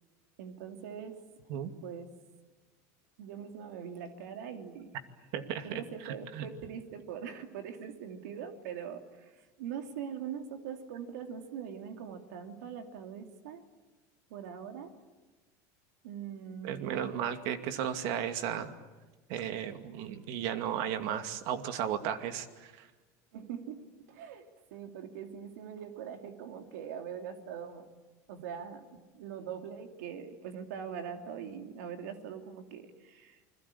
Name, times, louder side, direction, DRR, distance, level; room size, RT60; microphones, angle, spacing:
voice 1, 0.4-1.2 1.8-2.1 3.2-5.0 5.6-13.6 14.3-14.9 16.0-17.1 23.3-24.4 24.7-27.9 28.3-33.4, right 8 dB, 85° right, 6 dB, 2.9 m, -42 dB
voice 2, 5.3-6.5 16.6-18.7 19.3-22.9, right 9 dB, 65° right, 8 dB, 2.4 m, -35 dB
29.0 x 22.0 x 8.6 m, 1.2 s
supercardioid pair, 115°, 9 cm